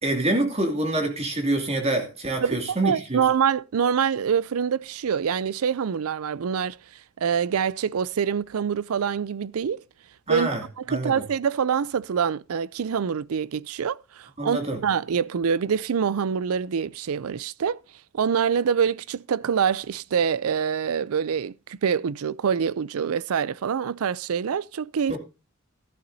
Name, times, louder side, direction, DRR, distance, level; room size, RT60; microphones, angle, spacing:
voice 1, 0.0-3.2 10.3-10.6 10.9-11.2 14.4-14.8 25.1-25.2, right 1 dB, 30° right, 2.5 m, -26 dB
voice 2, 2.4-6.8 7.2-9.8 10.3-10.5 10.9-17.8 18.1-25.2, right 7 dB, 90° right, 0.4 m, -25 dB
14.0 x 11.5 x 2.7 m
head